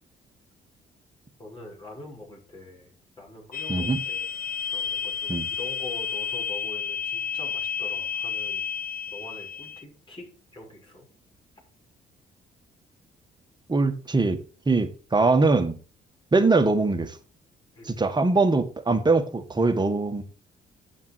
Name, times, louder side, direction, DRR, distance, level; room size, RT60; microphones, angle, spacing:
voice 1, 1.4-2.9 3.2-4.3 4.7-8.6 9.1-11.1 17.7-17.9, left 2 dB, 25° left, 6.6 m, -44 dB
sound 1, 3.5-9.8, left 7 dB, 55° left, 0.9 m, -31 dB
voice 2, 3.7-4.0 5.3-5.5 13.7-14.4 14.7-15.8 16.3-17.2 17.9-20.2, right 3 dB, 25° right, 1.8 m, -22 dB
9.1 x 7.3 x 4.8 m
cardioid pair, 75°, 18 cm